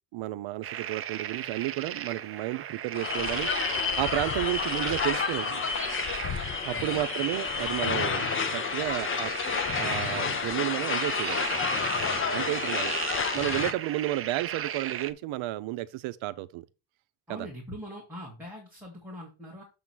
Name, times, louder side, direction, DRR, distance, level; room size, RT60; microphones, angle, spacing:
voice 1, 0.1-3.5 4.0-5.6 6.6-11.6 12.3-13.0 13.3-16.7 17.3-17.5, right 16 dB, 70° right, 0.7 m, -32 dB
sound 1, 0.6-15.1, right 10 dB, 30° right, 0.4 m, -36 dB
sound 2, 2.9-13.7, left 6 dB, 25° left, 0.5 m, -30 dB
voice 2, 17.3-19.6, equal, 5° right, 1.9 m, -42 dB
7.1 x 3.7 x 6.0 m
cardioid pair, 160°, 49 cm